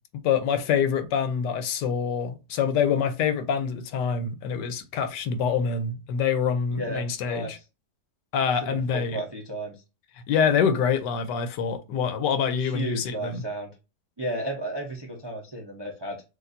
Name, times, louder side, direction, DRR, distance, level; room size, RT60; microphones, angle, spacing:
voice 1, 0.1-7.6 8.3-9.2 10.3-13.4, left 7 dB, 80° left, 1.3 m, -25 dB
voice 2, 6.7-7.6 8.5-9.8 12.6-13.7 14.2-16.2, right 1 dB, 35° right, 0.4 m, -33 dB
6.5 x 2.6 x 2.6 m
omnidirectional pair, 1.9 m